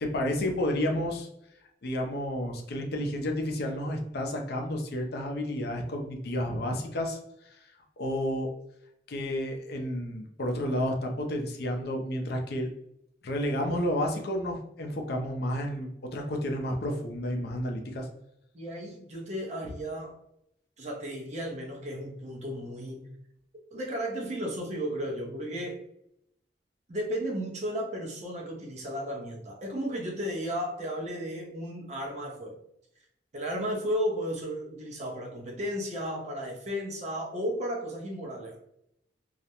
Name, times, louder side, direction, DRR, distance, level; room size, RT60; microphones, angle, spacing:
voice 1, 0.0-1.3 1.8-7.7 8.0-8.5 9.1-12.7 13.2-18.1, left 1 dB, 60° left, 2 dB, 0.4 m, -31 dB
voice 2, 18.5-20.2 20.8-23.0 23.7-25.8 26.9-32.6 33.3-38.6, equal, 40° right, -1 dB, 0.6 m, -34 dB
2.3 x 2.0 x 2.8 m, 0.78 s
head